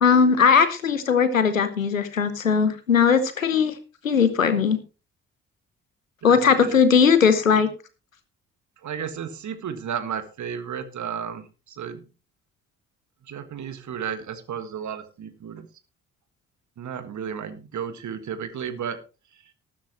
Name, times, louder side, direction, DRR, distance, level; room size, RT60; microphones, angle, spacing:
voice 1, 0.0-3.8 4.0-4.8 6.2-7.7, left 6 dB, 85° left, 12 dB, 1.0 m, -19 dB
voice 2, 6.2-6.8 8.8-12.1 13.2-15.7 16.8-19.0 19.3-19.5, right 8 dB, 45° right, 11 dB, 1.8 m, -33 dB
14.0 x 12.5 x 3.0 m, 0.32 s
figure-of-eight pair, 40°, 39 cm